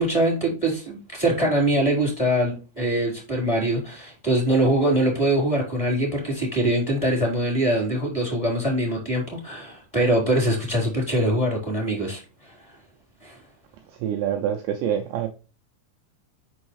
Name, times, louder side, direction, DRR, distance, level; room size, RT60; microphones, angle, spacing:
voice 1, 0.0-12.2 12.5-12.6 13.2-13.4, right 1 dB, 10° left, 2.9 m, -23 dB
voice 2, 14.0-15.3, right 9 dB, 80° right, 2.6 m, -26 dB
6.4 x 6.2 x 3.2 m
omnidirectional pair, 5.9 m